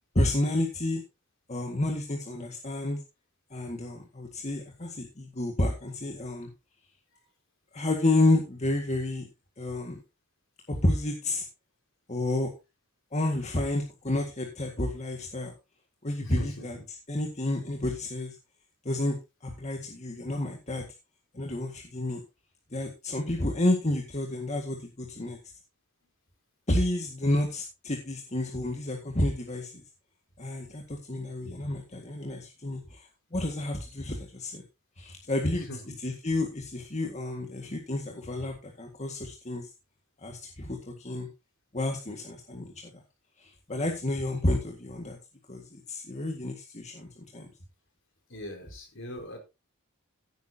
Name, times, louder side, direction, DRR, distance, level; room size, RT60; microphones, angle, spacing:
voice 1, 0.1-1.0 1.5-3.0 3.5-6.5 7.7-9.3 9.6-10.0 10.7-11.4 12.1-12.5 13.1-15.5 16.0-16.8 17.1-18.3 18.8-19.1 19.4-20.9 21.3-22.2 22.7-25.4 26.7-29.8 30.4-34.6 35.0-35.7 36.0-39.7 40.2-41.3 41.7-42.7 43.4-45.2 45.5-47.5, left 1 dB, 30° left, 2 dB, 1.9 m, -30 dB
voice 2, 16.2-16.8 35.7-35.8 48.3-49.4, equal, 60° left, 3 dB, 4.7 m, -39 dB
15.0 x 9.2 x 2.8 m, 0.26 s
head